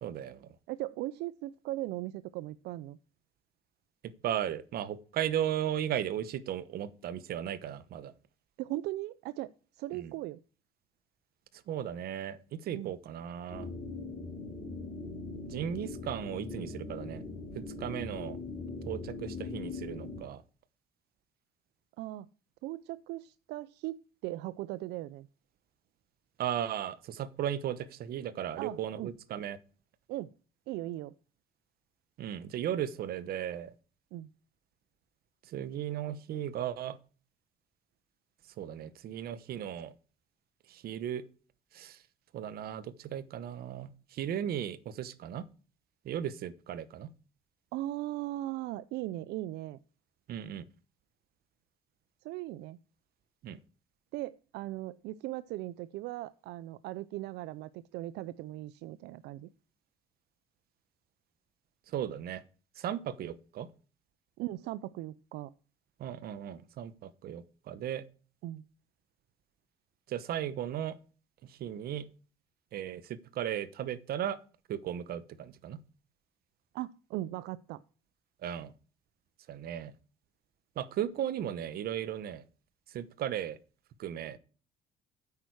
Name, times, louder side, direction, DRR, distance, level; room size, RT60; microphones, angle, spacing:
voice 1, 0.0-0.5 4.2-8.1 9.9-10.1 11.7-13.7 15.5-17.2 17.5-18.4 18.9-20.4 26.4-29.6 32.2-33.7 35.5-37.0 38.6-39.9 40.7-41.2 41.7-42.0 42.3-45.4 46.0-47.1 50.3-50.6 53.4-53.6 61.9-62.4 62.8-63.7 66.0-68.1 70.1-71.0 71.4-72.1 72.7-74.4 74.7-75.8 78.4-78.7 79.5-79.9 80.8-82.4 82.9-83.6 84.0-84.4, right 10 dB, 65° right, 16 dB, 1.0 m, -36 dB
voice 2, 0.7-3.0 8.6-10.4 12.7-12.9 22.0-22.3 22.6-25.3 28.6-29.1 30.1-30.3 30.7-31.1 34.1-34.3 47.7-49.8 52.2-52.8 54.1-59.5 64.4-65.5 68.4-68.7 76.7-77.8, right 16 dB, 85° right, 17 dB, 0.5 m, -38 dB
sound 1, 13.5-20.2, left 3 dB, 25° left, 4.3 m, -41 dB
9.2 x 8.5 x 4.7 m, 0.37 s
cardioid pair, 110°, 17 cm